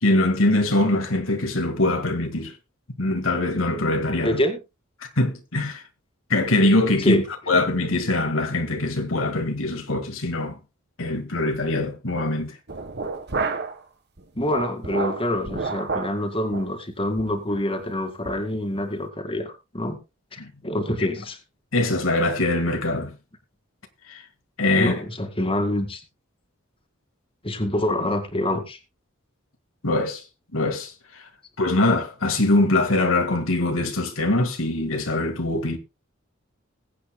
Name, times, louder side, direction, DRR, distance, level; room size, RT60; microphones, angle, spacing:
voice 1, 0.0-2.5 3.0-4.4 5.2-5.8 6.3-10.6 11.0-12.5 20.4-20.5 21.7-23.1 24.1-24.2 24.6-24.9 29.8-30.2 30.5-31.2 31.6-35.8, left 2 dB, 85° left, 1.8 m, -23 dB
voice 2, 4.2-4.6 7.0-7.2 14.3-20.0 20.6-21.4 24.8-26.0 27.4-28.8, left 1 dB, 25° left, 2.1 m, -26 dB
sound 1, 12.7-13.8 14.2-16.2 16.5-16.7 17.2-17.4 17.8-17.9 18.3-18.5, right 4 dB, 55° right, 1.4 m, -30 dB
21.0 x 8.5 x 2.2 m
head